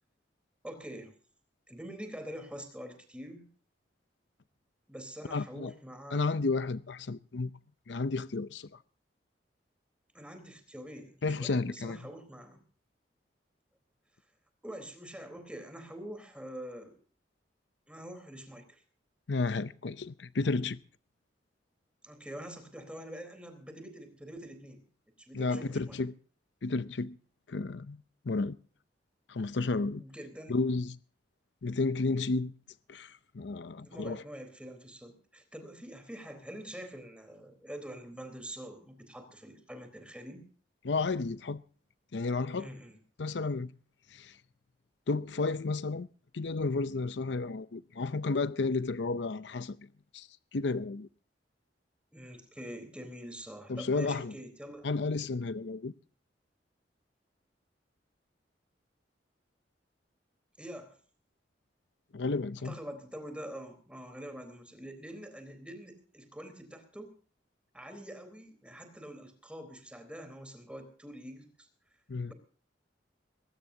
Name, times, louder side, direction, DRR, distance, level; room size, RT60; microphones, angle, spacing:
voice 1, 0.6-1.1 1.7-3.5 4.9-6.4 10.1-12.6 14.6-16.9 17.9-18.8 22.0-24.8 25.2-26.0 29.9-30.6 33.8-40.4 42.5-43.0 52.1-54.9 60.6-61.0 62.6-67.1 67.7-71.7 72.2-72.3, equal, 5° right, 3.9 m, -45 dB
voice 2, 5.3-5.7 6.1-7.5 7.9-8.8 11.2-12.0 19.3-20.8 25.3-26.1 26.6-27.2 27.5-28.6 29.3-30.0 30.5-30.9 31.6-32.5 32.9-34.2 40.8-41.6 42.1-42.7 43.2-43.7 44.1-44.4 45.1-46.1 46.3-49.8 50.1-50.3 50.5-51.1 53.7-54.3 54.8-55.9 62.1-62.8 72.1-72.3, left 3 dB, 80° left, 0.6 m, -32 dB
21.0 x 18.5 x 2.8 m
head